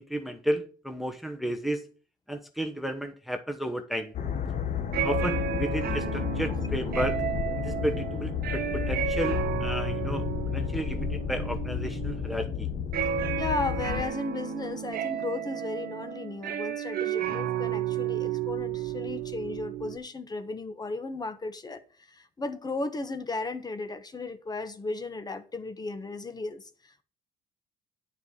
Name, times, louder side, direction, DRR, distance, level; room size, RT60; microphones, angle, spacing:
voice 1, 0.0-1.9 2.3-4.1 5.0-7.2 7.6-12.7, right 1 dB, ahead, 0.9 m, -33 dB
sound 1, 4.1-14.0, left 7 dB, 45° left, 1.4 m, -32 dB
sound 2, 4.9-20.0, right 9 dB, 60° right, 1.1 m, -32 dB
voice 2, 6.5-7.0 13.4-27.0, left 3 dB, 25° left, 1.1 m, -35 dB
9.6 x 4.7 x 7.0 m
cardioid pair, 110°, 17 cm